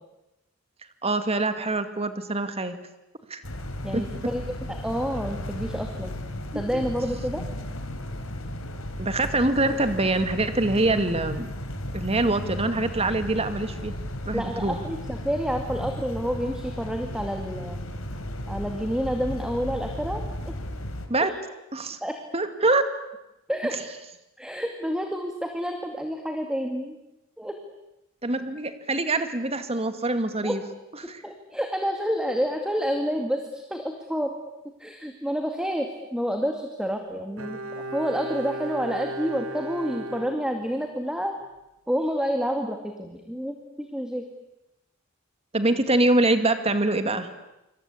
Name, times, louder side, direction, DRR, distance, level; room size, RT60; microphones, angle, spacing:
voice 1, 1.0-2.8 3.3-3.4 3.9-4.0 6.7-6.8 9.0-11.5 11.9-14.0 14.2-14.8 21.1-21.3 21.7-22.0 22.3-22.8 28.2-30.6 31.1-31.2 45.5-47.3, right 2 dB, 30° right, 9 dB, 2.3 m, -24 dB
sound 1, 3.4-21.1, left 1 dB, 80° left, 3.8 m, -35 dB
voice 2, 3.8-6.1 6.5-7.4 14.3-17.8 18.5-20.5 22.0-22.1 23.5-23.8 24.4-27.0 27.4-27.6 30.4-30.6 31.2-34.3 34.8-37.6 37.9-41.4 41.9-44.3, equal, 5° right, 4 dB, 2.3 m, -29 dB
Bowed string instrument, 37.4-41.1 41.4-41.5, right 1 dB, 80° right, 2.6 m, -36 dB
26.5 x 26.0 x 8.6 m, 0.93 s
head